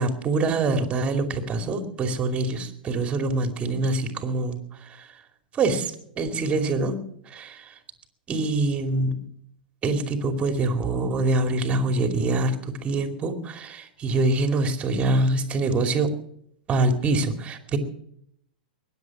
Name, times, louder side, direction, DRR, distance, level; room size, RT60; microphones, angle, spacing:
voice 1, 0.0-5.1 5.5-7.0 7.3-7.6 8.3-9.2 9.8-16.1 16.7-17.8, right 2 dB, 25° right, 6 dB, 2.6 m, -25 dB
21.5 x 10.0 x 6.1 m, 0.69 s
hypercardioid pair, 105°, 5 cm